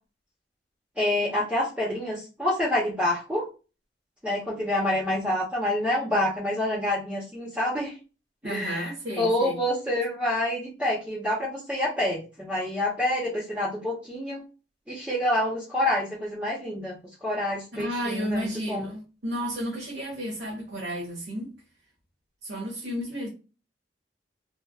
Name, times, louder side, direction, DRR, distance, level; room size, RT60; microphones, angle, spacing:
voice 1, 1.0-3.4 4.2-7.9 8.4-14.4 14.9-17.0 17.2-18.9, left 1 dB, 5° right, 0.8 m, -27 dB
voice 2, 8.4-9.6 17.8-21.5 22.4-23.3, equal, 80° right, 1.1 m, -32 dB
3.3 x 2.4 x 2.3 m
head